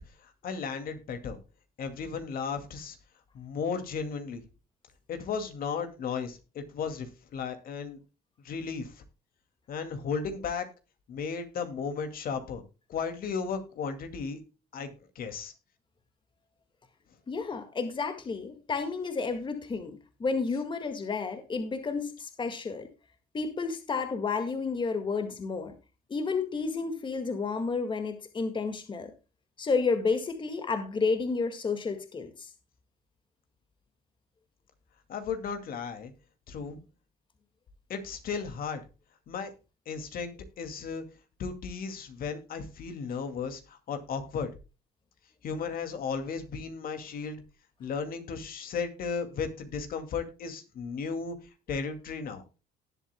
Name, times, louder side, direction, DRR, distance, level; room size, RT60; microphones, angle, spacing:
voice 1, 0.4-1.4 1.8-3.0 3.3-4.4 5.1-7.1 7.3-8.0 8.4-8.9 9.7-10.7 11.1-12.6 12.9-14.4 14.7-15.5 35.1-36.1 36.5-36.8 37.9-38.8 39.3-39.5 39.9-41.0 41.4-44.5 45.4-47.4 47.8-51.4 51.7-52.4, left 5 dB, 60° left, 8 dB, 2.3 m, -35 dB
voice 2, 17.3-22.9 23.3-25.7 26.1-29.1 29.6-32.5, left 4 dB, 30° left, 8 dB, 1.9 m, -31 dB
18.5 x 8.1 x 2.2 m, 0.30 s
cardioid pair, 110°, 17 cm